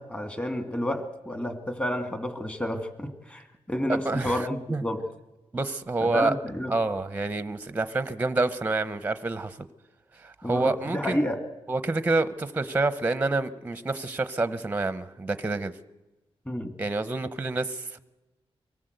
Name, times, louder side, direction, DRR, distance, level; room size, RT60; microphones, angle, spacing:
voice 1, 0.0-5.0 6.1-6.7 10.4-11.4 16.5-16.7, left 1 dB, 15° left, 8 dB, 2.1 m, -30 dB
voice 2, 3.9-4.8 5.5-6.3 6.7-9.6 10.1-11.2 11.7-15.7 16.8-18.0, right 2 dB, 15° right, 13 dB, 0.8 m, -28 dB
24.5 x 17.5 x 8.0 m, 1.1 s
wide cardioid pair, 145°, 10 cm